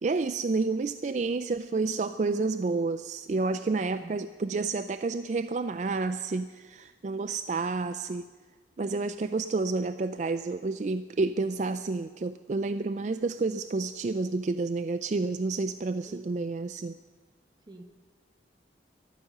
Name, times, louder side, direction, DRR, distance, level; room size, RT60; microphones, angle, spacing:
voice 1, 0.0-8.2 8.8-16.9, right 3 dB, 40° right, 10 dB, 0.4 m, -30 dB
voice 2, 3.8-4.2 16.1-16.2 17.7-17.8, right 2 dB, 25° right, 5 dB, 1.1 m, -47 dB
14.0 x 12.5 x 6.6 m, 1.4 s
head